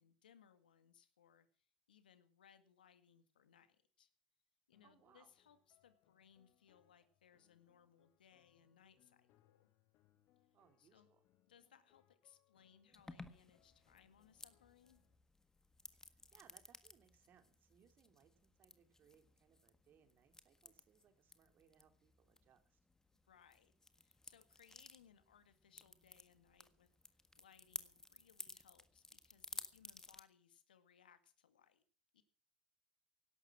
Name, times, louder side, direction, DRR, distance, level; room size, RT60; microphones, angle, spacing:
voice 1, 0.0-4.1 4.7-9.7 10.8-11.1 11.5-15.0 23.3-31.8 32.1-32.2, left 8 dB, 85° left, 11 dB, 1.9 m, -68 dB
sound 1, 4.7-15.2, left 13 dB, 55° left, 2.7 m, -78 dB
voice 2, 4.8-5.3 10.5-11.2 15.9-22.8, right 8 dB, 40° right, 8 dB, 2.9 m, -71 dB
sound 2, 12.9-30.2, left 2 dB, 10° left, 1.6 m, -56 dB
17.5 x 11.5 x 6.1 m, 0.43 s
hypercardioid pair, 85°, 5 cm